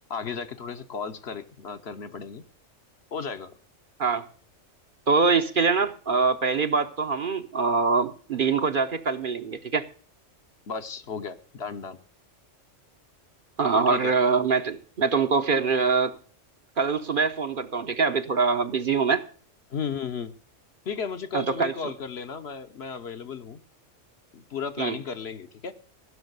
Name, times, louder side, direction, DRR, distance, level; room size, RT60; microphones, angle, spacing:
voice 1, 0.1-2.4 3.1-3.5 10.7-12.0 13.7-14.1 19.7-20.3 20.9-23.6 24.3-25.7, left 6 dB, 60° left, 1.1 m, -34 dB
voice 2, 5.1-9.9 13.6-16.1 16.8-19.2 21.3-21.7 24.8-25.0, right 5 dB, 50° right, 0.8 m, -24 dB
16.0 x 6.2 x 8.0 m
omnidirectional pair, 1.3 m